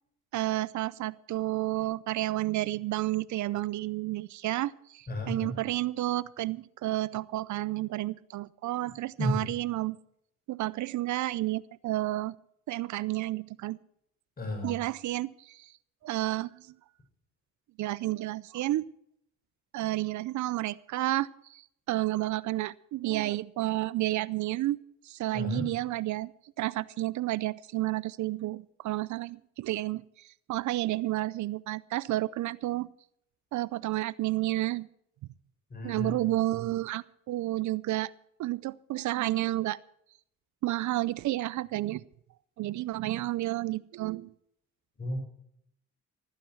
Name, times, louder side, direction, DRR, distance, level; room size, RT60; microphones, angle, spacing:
voice 1, 0.3-10.0 10.5-12.4 12.7-13.8 14.6-15.7 16.0-16.7 17.8-18.9 19.7-21.6 21.9-24.8 25.0-26.3 26.6-32.9 33.5-34.9 35.8-38.1 38.4-39.8 40.6-42.0 42.6-44.3, right 16 dB, 75° right, 21 dB, 0.6 m, -31 dB
voice 2, 5.1-5.6 9.2-9.4 14.4-14.8 25.3-25.7 35.7-36.2 45.0-45.2, left 1 dB, 30° left, 3 dB, 6.5 m, -32 dB
15.0 x 14.5 x 4.6 m, 0.71 s
cardioid pair, 90°, 30 cm